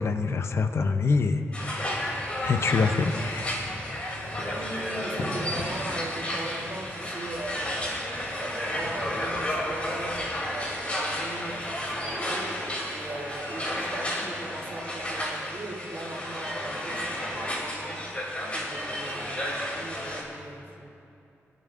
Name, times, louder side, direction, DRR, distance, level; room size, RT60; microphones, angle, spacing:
voice 1, 0.0-2.0 2.4-3.6 3.9-4.3, left 4 dB, 60° left, 8 dB, 0.6 m, -26 dB
sound 1, 1.5-20.2, left 1 dB, 25° left, 2.7 m, -32 dB
sound 2, 1.8-10.2, left 1 dB, 75° left, 2.7 m, -42 dB
voice 2, 4.4-7.6 8.3-20.9, right 1 dB, 50° right, -2 dB, 2.6 m, -39 dB
27.5 x 11.0 x 2.5 m, 2.7 s
wide cardioid pair, 140°, 5 cm